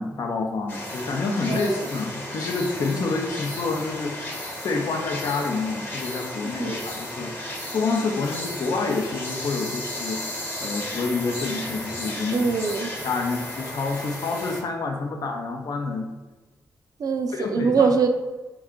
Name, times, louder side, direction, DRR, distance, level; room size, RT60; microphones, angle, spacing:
voice 1, 0.0-7.3 7.7-10.2 10.6-12.5 13.0-16.1 17.3-18.1, left 3 dB, 65° left, 2 dB, 0.5 m, -28 dB
sound 1, 0.7-14.6, left 1 dB, 25° left, 0.9 m, -34 dB
voice 2, 1.5-1.9 6.6-6.9 12.3-12.9 17.0-18.1, right 5 dB, 60° right, 6 dB, 0.5 m, -23 dB
4.3 x 2.3 x 3.6 m, 1.2 s
cardioid pair, 75°, 7 cm